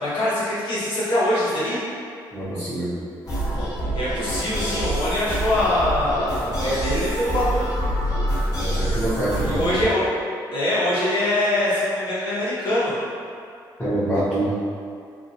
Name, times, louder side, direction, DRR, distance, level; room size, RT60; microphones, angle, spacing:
voice 1, 0.0-1.8 3.9-7.6 9.4-10.1 10.5-13.0, left 1 dB, 70° left, -10 dB, 1.2 m, -23 dB
voice 2, 2.3-3.0 8.6-9.7 13.8-14.5, right 1 dB, 20° left, -15 dB, 1.0 m, -25 dB
sound 1, 3.2-9.9, right 1 dB, 45° left, 1.0 m, -26 dB
2.7 x 2.6 x 2.7 m, 2.4 s
cardioid pair, 95°, 8 cm